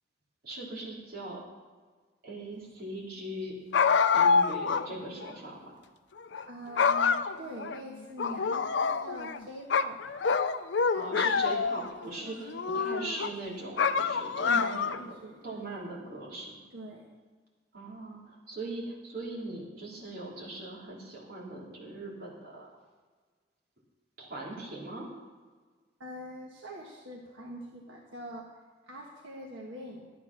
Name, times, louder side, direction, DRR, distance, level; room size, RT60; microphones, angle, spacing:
voice 1, 0.4-1.4 2.2-3.5 4.1-5.7 10.9-15.2 15.4-16.6 17.7-22.7 24.2-25.1, right 2 dB, 50° right, -5 dB, 3.6 m, -40 dB
sound 1, 3.7-4.8 5.2-5.3 6.2-6.4 6.8-7.8 8.2-9.4 9.7-11.9 12.5-13.3 13.8-15.1, left 5 dB, 70° left, 0.5 m, -26 dB
voice 2, 6.4-10.0 12.0-13.2 14.4-15.6 16.7-17.0 26.0-28.5 28.8-30.1, right 1 dB, 85° right, -1 dB, 1.6 m, -43 dB
12.5 x 9.2 x 6.1 m, 1.4 s
head